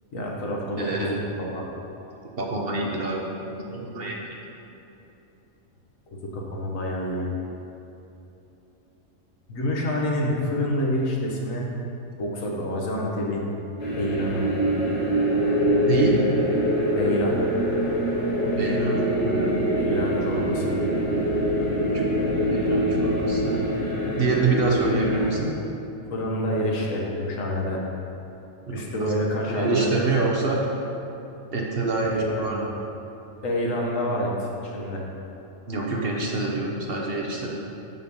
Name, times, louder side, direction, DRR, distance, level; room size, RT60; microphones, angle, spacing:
voice 1, 0.1-1.6 6.1-7.3 9.5-11.6 12.2-13.5 14.0-14.5 16.9-17.4 19.7-20.8 26.1-27.8 28.7-29.9 32.0-32.7 33.4-35.0, equal, 75° left, -2 dB, 1.6 m, -27 dB
voice 2, 0.8-1.2 2.4-3.2 3.6-4.2 15.9-16.2 18.6-19.6 21.9-23.7 24.2-25.5 28.7-28.9 29.5-30.6 31.5-32.6 35.7-37.5, right 3 dB, 50° right, -2 dB, 1.0 m, -26 dB
sound 1, 13.8-25.3, equal, 50° left, 1.6 m, -24 dB
6.6 x 5.7 x 5.4 m, 3.0 s
omnidirectional pair, 1.4 m